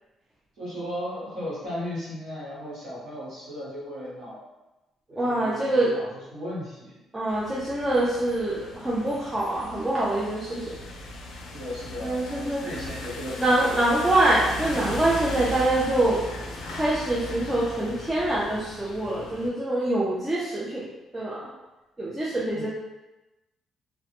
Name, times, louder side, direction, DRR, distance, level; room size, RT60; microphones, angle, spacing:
voice 1, 0.6-4.4 5.1-7.0 11.5-13.8 22.5-22.7, equal, 65° right, -8 dB, 1.0 m, -36 dB
voice 2, 5.2-5.9 7.1-10.8 12.0-12.6 13.4-16.2 16.7-21.5 22.0-22.7, right 1 dB, 10° right, -8 dB, 0.3 m, -25 dB
sound 1, 7.3-19.5, left 1 dB, 75° left, 0.4 m, -38 dB
2.1 x 2.0 x 2.8 m, 1.0 s
cardioid pair, 155°, 0 cm